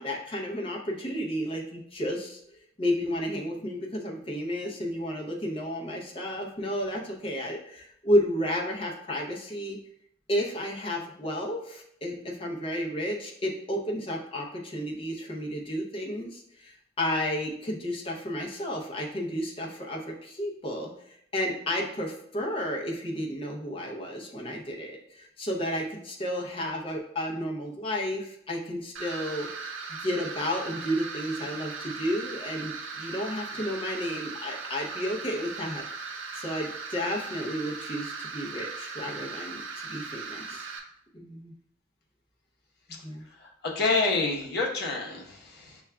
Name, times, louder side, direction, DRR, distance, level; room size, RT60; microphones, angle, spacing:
voice 1, 0.0-2.4 2.8-9.8 10.3-20.9 21.3-29.5 30.0-35.8 36.3-40.7 41.1-41.5 43.0-43.2, equal, 30° left, -1 dB, 0.6 m, -32 dB
sound 1, 29.0-40.8, right 4 dB, 70° right, 0.6 m, -38 dB
voice 2, 43.7-45.8, left 3 dB, 55° left, -1 dB, 0.9 m, -27 dB
6.8 x 2.3 x 2.2 m, 0.70 s
head